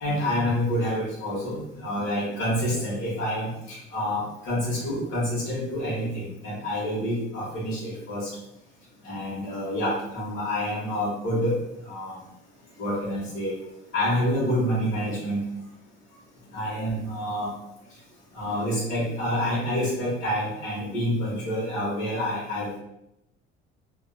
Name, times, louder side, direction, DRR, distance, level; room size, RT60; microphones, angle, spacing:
voice 1, 0.0-8.3 9.0-11.5 11.8-12.2 12.8-13.5 13.9-15.4 16.5-17.5 18.3-22.8, equal, 55° left, -9 dB, 0.9 m, -28 dB
2.4 x 2.1 x 2.4 m, 0.85 s
cardioid pair, 155°, 21 cm